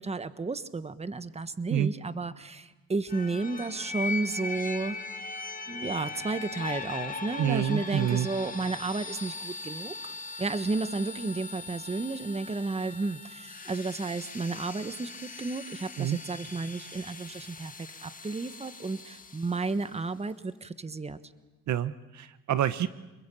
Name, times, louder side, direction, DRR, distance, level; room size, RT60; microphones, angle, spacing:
voice 1, 0.0-5.0 5.7-21.3, right 3 dB, 20° right, 12 dB, 1.4 m, -32 dB
sound 1, 3.1-19.8, left 4 dB, 25° left, 2.1 m, -40 dB
voice 2, 7.4-8.3 16.0-16.2 21.7-22.9, right 10 dB, 70° right, 13 dB, 1.0 m, -27 dB
28.0 x 21.5 x 8.6 m, 1.1 s
cardioid pair, 90°, 30 cm